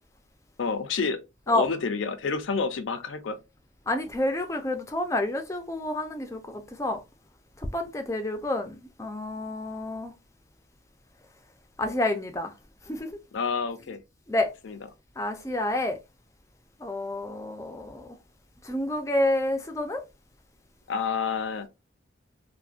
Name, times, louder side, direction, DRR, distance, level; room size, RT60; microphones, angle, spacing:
voice 1, 0.6-1.2 1.5-3.4 13.3-14.0 14.6-14.8 20.9-21.7, left 5 dB, 80° left, 0.5 m, -29 dB
voice 2, 3.9-7.0 7.7-10.1 11.8-12.5 12.9-13.1 14.3-14.5 15.2-16.0 16.8-18.1 18.6-20.0, left 1 dB, 15° left, 0.4 m, -29 dB
3.4 x 2.1 x 2.4 m
head